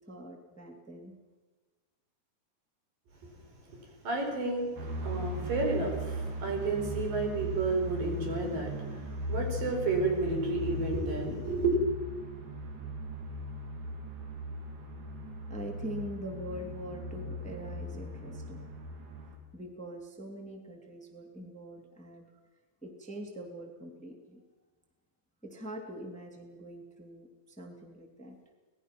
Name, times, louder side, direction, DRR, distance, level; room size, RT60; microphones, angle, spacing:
voice 1, 0.1-1.2 15.5-18.8 19.5-22.3 22.8-24.4 25.4-28.5, equal, 5° left, 3 dB, 2.0 m, -43 dB
voice 2, 3.7-11.8, right 3 dB, 85° right, 2 dB, 6.4 m, -31 dB
sound 1, 4.8-19.4, equal, 65° right, 4.3 m, -38 dB
25.5 x 19.0 x 6.1 m, 1.3 s
omnidirectional pair, 3.8 m